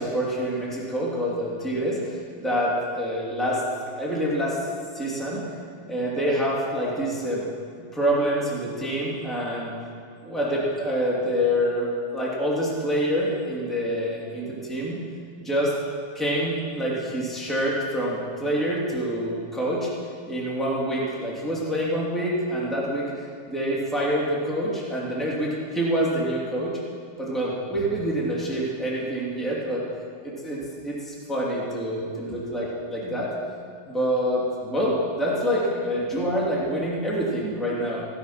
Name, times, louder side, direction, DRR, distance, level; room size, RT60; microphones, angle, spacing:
voice 1, 0.0-3.6 4.0-4.6 4.9-5.4 5.9-7.4 7.9-9.7 10.2-15.0 15.4-15.7 16.1-19.9 20.3-26.8 27.2-29.8 30.2-30.6 30.8-33.3 33.9-38.1, equal, ahead, -5 dB, 1.9 m, -26 dB
16.5 x 11.0 x 5.9 m, 2.3 s
omnidirectional pair, 5.1 m